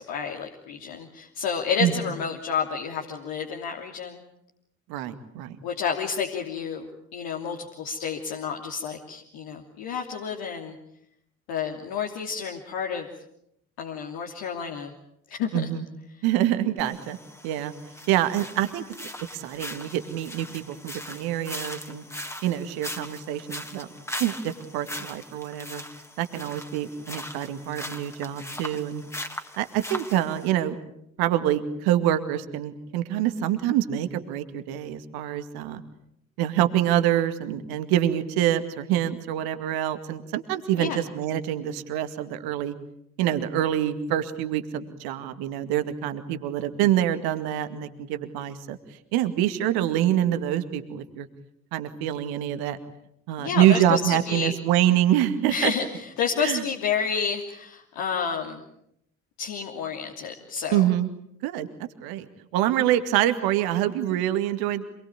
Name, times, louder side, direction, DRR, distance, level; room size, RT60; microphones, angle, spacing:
voice 1, 0.0-4.2 5.6-10.8 11.5-13.1 13.8-14.9 15.3-15.5 40.8-41.0 53.4-54.6 55.5-58.6 59.4-60.9, left 6 dB, 60° left, 0 dB, 3.1 m, -30 dB
voice 2, 4.9-5.6 15.5-15.8 16.2-17.2 17.4-17.7 18.1-18.8 19.3-22.0 22.4-23.9 24.2-25.8 26.2-29.0 29.6-30.8 31.2-35.8 36.4-42.7 43.2-48.8 49.1-51.3 51.7-52.8 53.3-55.7 56.4-56.6 60.7-61.1 61.4-61.7 62.0-62.3 62.5-64.8, right 12 dB, 60° right, 9 dB, 2.2 m, -25 dB
sound 1, 16.8-30.5, left 1 dB, 5° left, 3.1 m, -40 dB
27.0 x 21.0 x 9.1 m, 0.75 s
figure-of-eight pair, 50°, 41 cm